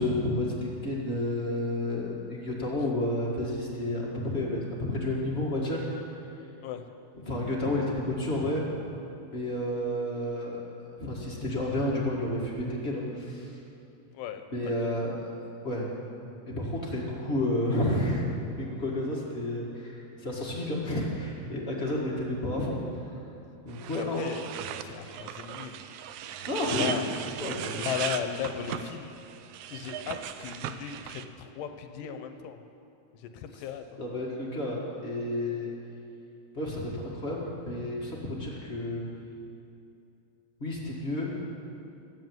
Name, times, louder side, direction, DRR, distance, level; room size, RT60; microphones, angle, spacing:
voice 1, 0.0-5.9 7.3-8.6 9.2-10.6 11.0-13.6 14.5-15.3 15.6-15.9 16.6-18.2 18.6-23.1 23.6-24.3 26.4-27.1 27.4-27.8 34.0-35.7 36.5-39.1 40.6-41.4, left 1 dB, 30° left, -4 dB, 1.3 m, -31 dB
voice 2, 14.1-14.9 24.0-24.5 24.8-25.8 26.7-27.1 27.8-29.1 29.7-32.6 33.1-34.0, left 9 dB, 75° left, 7 dB, 2.2 m, -36 dB
sound 1, 23.7-31.2, right 9 dB, 85° right, 1.7 m, -37 dB
14.0 x 7.8 x 9.1 m, 2.7 s
omnidirectional pair, 4.0 m